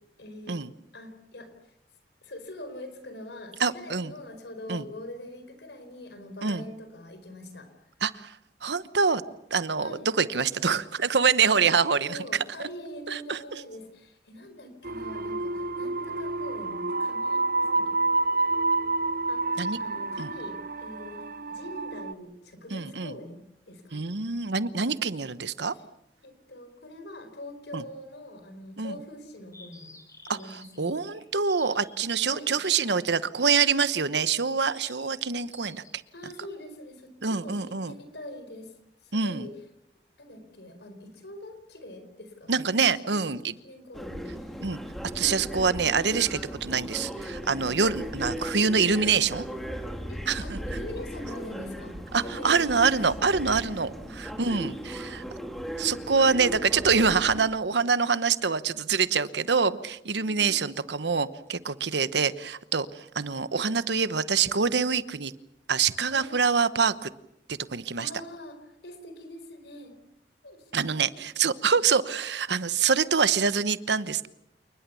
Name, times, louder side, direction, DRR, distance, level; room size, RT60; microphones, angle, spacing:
voice 1, 0.2-0.6 0.9-1.7 2.2-7.9 9.8-10.1 11.4-11.7 12.0-18.0 19.2-21.2 21.5-24.0 25.7-25.8 26.2-29.9 30.3-31.0 32.3-32.5 36.1-38.7 39.0-39.6 40.2-42.5 43.0-43.3 43.6-44.6 50.1-52.6 53.7-54.2 60.1-60.6 66.1-66.3 68.0-70.0 70.4-71.3, left 1 dB, 75° left, 9 dB, 4.7 m, -44 dB
voice 2, 3.6-4.1 4.7-4.8 6.4-6.6 8.0-8.4 8.6-9.2 9.5-12.2 13.1-13.4 19.6-19.8 20.2-20.3 22.7-23.1 23.9-25.7 27.7-27.8 28.8-29.0 30.3-35.8 37.2-37.9 39.1-39.5 42.5-43.5 44.6-44.8 45.1-49.5 50.3-50.6 52.1-55.2 55.8-65.3 65.7-67.1 67.5-68.1 70.7-74.3, right 5 dB, 80° right, 15 dB, 1.0 m, -25 dB
sound 1, 14.8-22.1, right 3 dB, 55° right, 0.8 m, -29 dB
sound 2, 29.5-36.5, left 2 dB, 20° left, 6.6 m, -52 dB
sound 3, 43.9-57.5, equal, ahead, 2.5 m, -37 dB
28.5 x 20.5 x 7.1 m, 0.83 s
head